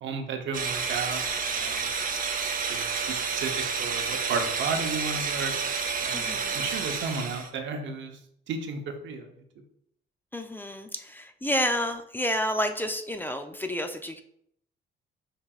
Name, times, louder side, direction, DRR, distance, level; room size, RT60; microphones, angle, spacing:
voice 1, 0.0-1.9 2.7-3.5 3.8-5.5 6.0-8.2 8.5-9.3, right 4 dB, 70° right, 5 dB, 0.8 m, -33 dB
sound 1, 0.5-7.5, right 5 dB, 45° right, 0.7 m, -30 dB
voice 2, 6.1-6.6 10.3-14.2, equal, 10° left, 7 dB, 0.4 m, -30 dB
5.7 x 3.3 x 2.4 m, 0.71 s
cardioid pair, 90°, 20 cm